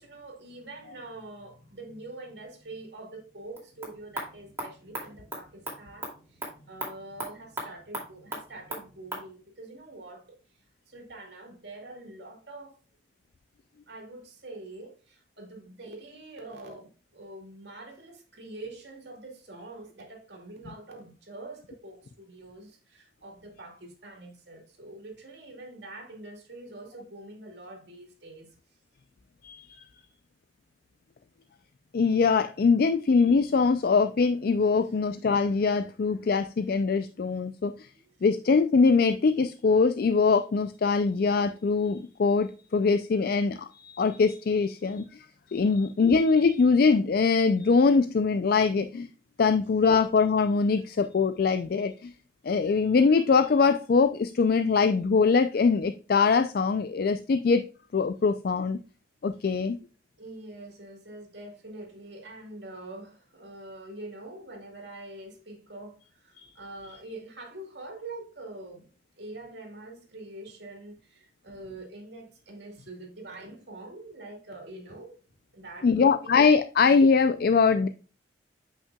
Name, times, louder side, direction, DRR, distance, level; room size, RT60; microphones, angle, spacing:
voice 1, 0.0-10.4 10.9-12.8 13.9-28.5 34.8-34.9 37.9-38.0 59.4-59.6 60.2-68.9 69.2-75.2 75.5-76.1, right 2 dB, 65° right, 2.3 m, -45 dB
sound 1, 3.4-9.3, right 1 dB, 15° right, 2.4 m, -40 dB
voice 2, 29.4-29.8 31.9-37.9 38.2-45.2 45.5-49.1 49.4-52.1 52.4-57.7 57.9-58.8 59.2-59.8 75.8-77.9, left 4 dB, 55° left, 0.4 m, -23 dB
8.4 x 5.7 x 2.3 m
head